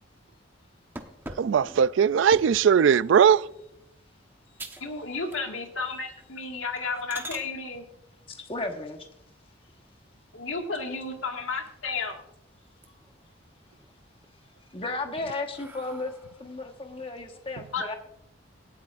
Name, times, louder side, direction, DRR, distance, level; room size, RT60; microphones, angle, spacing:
sound 1, 1.0-2.7 3.3-3.6 4.0-4.1 4.6-4.9 5.2-5.8 6.1-6.3 6.8-7.5 9.5-10.1 10.6-10.7 11.1-11.2 11.5-12.3 12.6-13.2 13.6-14.3 14.8-16.5, right 1 dB, 10° right, 1.0 m, -44 dB
voice 1, 1.4-3.5, right 7 dB, 70° right, 0.3 m, -19 dB
voice 2, 4.8-7.9 10.3-12.2 17.7-17.9, left 4 dB, 85° left, 1.9 m, -32 dB
voice 3, 8.3-9.1 14.7-16.1 16.4-17.9, left 2 dB, 25° left, 1.3 m, -34 dB
18.0 x 13.0 x 2.5 m
head